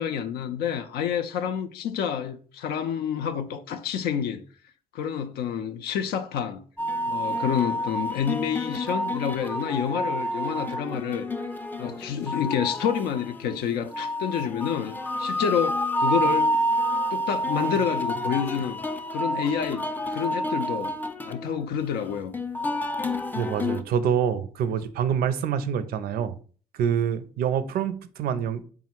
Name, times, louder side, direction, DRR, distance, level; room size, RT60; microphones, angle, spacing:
voice 1, 0.0-4.4 4.9-6.6 7.1-11.3 11.8-16.5 17.1-18.8 19.1-19.9 20.1-20.9 21.2-22.3, left 8 dB, 75° left, 0.4 m, -28 dB
sound 1, 6.8-23.8, equal, 10° left, 0.4 m, -29 dB
voice 2, 23.3-26.3 26.8-28.6, right 8 dB, 65° right, 0.4 m, -26 dB
3.6 x 2.1 x 4.3 m
supercardioid pair, 65°, 17 cm